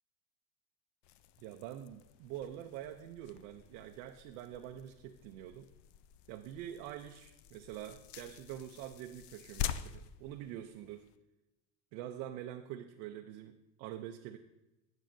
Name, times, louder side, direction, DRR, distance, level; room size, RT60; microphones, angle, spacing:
sound 1, 1.0-11.2, left 10 dB, 60° left, 0.6 m, -46 dB
voice 1, 1.4-5.7 6.3-11.1 11.9-14.4, right 11 dB, 85° right, 4 dB, 0.7 m, -45 dB
15.5 x 6.4 x 2.6 m, 0.99 s
supercardioid pair, 80°, 48 cm